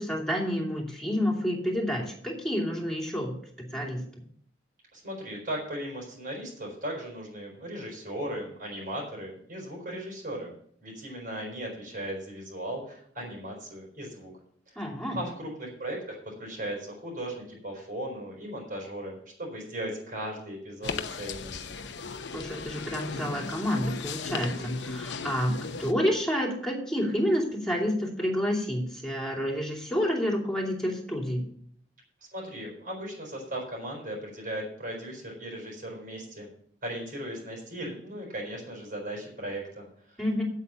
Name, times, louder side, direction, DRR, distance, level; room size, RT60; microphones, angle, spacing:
voice 1, 0.0-4.0 14.8-15.2 22.3-25.5 25.8-31.4 40.2-40.4, equal, 5° left, -2 dB, 2.7 m, -29 dB
voice 2, 4.9-10.5 10.8-14.3 15.1-21.6 32.3-36.5 36.8-40.2, right 1 dB, 55° right, -1 dB, 4.5 m, -37 dB
sound 1, 20.8-25.9, left 4 dB, 80° left, 0.8 m, -36 dB
8.4 x 8.2 x 6.8 m, 0.63 s
head